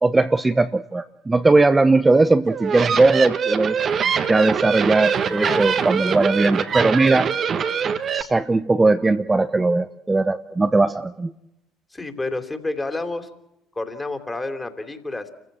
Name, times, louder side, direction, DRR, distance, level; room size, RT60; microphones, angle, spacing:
voice 1, 0.0-7.3 8.1-11.3, right 3 dB, 20° right, 9 dB, 0.9 m, -19 dB
sound 1, 2.5-8.2, right 7 dB, 45° right, 1.6 m, -23 dB
voice 2, 5.4-5.7 11.9-13.3 13.7-15.3, left 2 dB, 15° left, 7 dB, 3.3 m, -29 dB
29.5 x 15.5 x 7.6 m, 0.89 s
hypercardioid pair, 60°, 0 cm